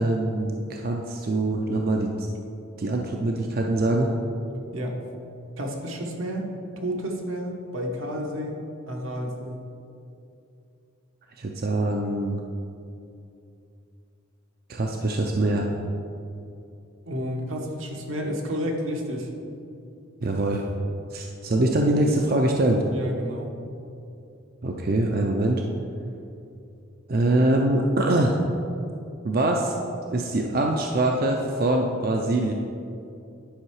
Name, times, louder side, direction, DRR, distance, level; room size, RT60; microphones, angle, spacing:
voice 1, 0.0-2.3 2.8-4.1 11.4-12.4 14.7-15.7 20.2-20.6 21.1-22.8 24.6-25.6 27.1-28.3 29.2-29.7 30.1-32.5, right 2 dB, 45° right, 1 dB, 0.5 m, -23 dB
voice 2, 4.7-5.0 5.6-6.5 6.8-8.6 8.9-9.6 17.1-19.3 22.9-23.5, equal, 80° right, 1 dB, 1.3 m, -31 dB
10.5 x 5.5 x 4.8 m, 2.6 s
head